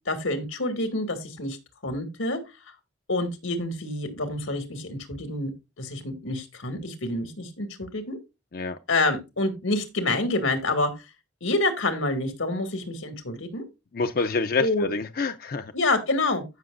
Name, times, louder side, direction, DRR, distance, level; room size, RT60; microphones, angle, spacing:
voice 1, 0.1-1.6 1.8-2.4 3.1-5.5 5.8-8.2 8.9-10.9 11.4-13.6 14.6-14.9 15.7-16.4, left 2 dB, 90° left, 2.1 m, -27 dB
voice 2, 13.9-15.7, left 4 dB, 45° left, 0.5 m, -27 dB
15.5 x 6.1 x 2.5 m
head